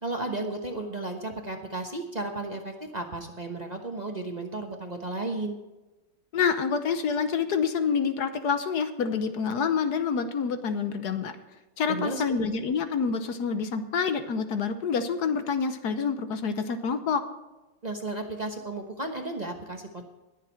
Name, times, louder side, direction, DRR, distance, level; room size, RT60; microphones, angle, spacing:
voice 1, 0.0-5.6 11.9-12.4 17.8-20.0, right 2 dB, 35° right, 3 dB, 0.7 m, -34 dB
voice 2, 6.3-11.4 11.8-17.2, left 6 dB, 60° left, 9 dB, 1.2 m, -27 dB
20.5 x 7.4 x 4.4 m, 1.1 s
omnidirectional pair, 2.3 m